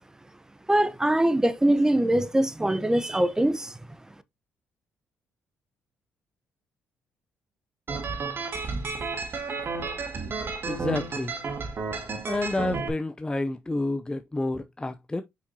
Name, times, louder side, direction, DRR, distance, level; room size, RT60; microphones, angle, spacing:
voice 1, 0.7-3.7, right 1 dB, 10° right, 0.9 m, -22 dB
sound 1, 7.9-12.9, right 4 dB, 50° right, 1.9 m, -32 dB
voice 2, 10.7-11.4 12.3-15.2, left 2 dB, 15° left, 0.6 m, -29 dB
5.8 x 5.7 x 2.8 m
supercardioid pair, 60°, 5 cm